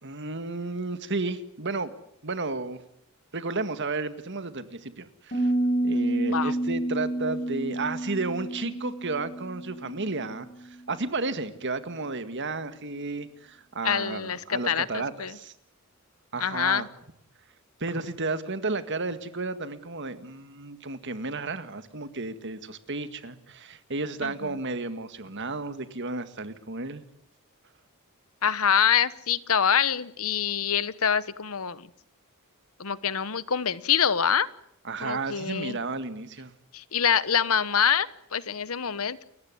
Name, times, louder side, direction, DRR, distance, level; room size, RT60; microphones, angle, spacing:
voice 1, 0.0-1.9 2.2-2.8 3.3-5.5 5.8-15.5 16.3-16.9 17.8-27.0 34.8-36.5, right 3 dB, 55° right, 11 dB, 1.9 m, -33 dB
Piano, 5.3-10.9, right 1 dB, 35° left, 6.6 m, -29 dB
voice 2, 13.8-15.4 16.4-16.9 24.2-24.5 28.4-31.9 32.8-34.5 35.0-35.8 36.7-39.2, left 7 dB, 75° left, 17 dB, 1.1 m, -25 dB
29.5 x 15.0 x 9.8 m, 0.73 s
head